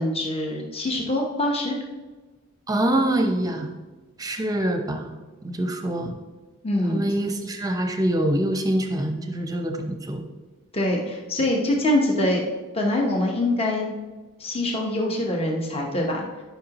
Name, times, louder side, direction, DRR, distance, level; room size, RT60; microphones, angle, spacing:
voice 1, 0.0-1.8 6.6-7.1 10.7-12.4 12.7-13.9 14.4-16.3, left 1 dB, 25° left, 0 dB, 1.1 m, -24 dB
voice 2, 2.7-3.7 4.2-5.2 5.4-6.1 6.9-10.2, right 1 dB, 15° right, 4 dB, 0.8 m, -25 dB
12.5 x 5.8 x 3.0 m, 1.2 s
head